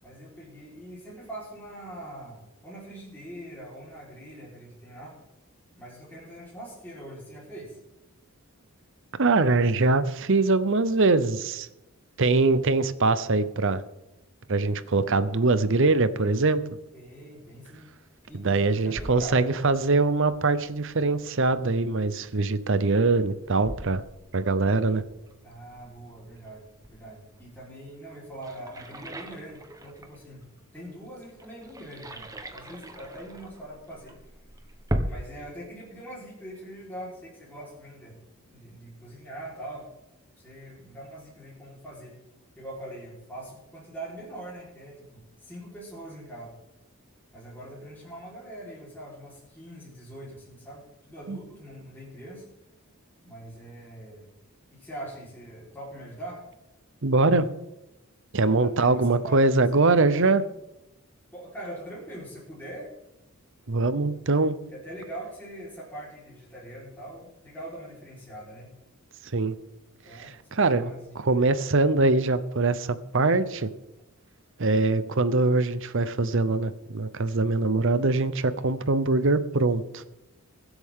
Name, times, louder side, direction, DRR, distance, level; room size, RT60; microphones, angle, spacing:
voice 1, 0.0-5.2 5.7-7.8 16.9-17.9 18.3-19.4 25.4-30.5 30.7-34.2 34.6-34.7 35.0-38.2 38.5-39.9 40.4-42.2 42.6-46.6 47.3-52.5 53.2-54.3 54.7-56.4 58.6-60.2 61.3-62.9 64.7-68.7 70.0-71.5, right 1 dB, 10° left, -7 dB, 4.3 m, -42 dB
voice 2, 9.2-11.7 12.2-13.8 14.5-16.6 18.3-24.0 24.3-25.0 51.3-51.4 57.0-57.5 58.3-60.4 63.7-64.5 69.3-69.6 70.1-70.9 71.2-73.7 74.6-80.0, right 3 dB, 60° right, 14 dB, 0.8 m, -23 dB
sound 1, 17.4-35.3, equal, 15° right, 1.1 m, -40 dB
22.0 x 8.2 x 3.7 m, 0.94 s
head